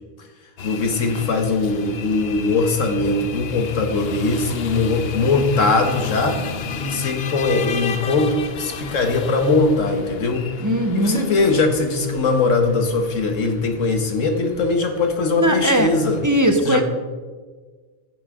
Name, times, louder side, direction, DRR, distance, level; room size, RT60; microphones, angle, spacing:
voice 1, 0.6-6.4 6.7-10.4 10.9-16.2 16.7-16.8, left 3 dB, 85° left, 5 dB, 1.7 m, -20 dB
sound 1, 0.6-16.2, left 6 dB, 60° left, 0.9 m, -33 dB
voice 2, 10.6-11.3 15.4-15.9 16.2-16.8, right 1 dB, 15° right, 5 dB, 0.8 m, -19 dB
15.5 x 7.1 x 3.7 m, 1.4 s
omnidirectional pair, 1.3 m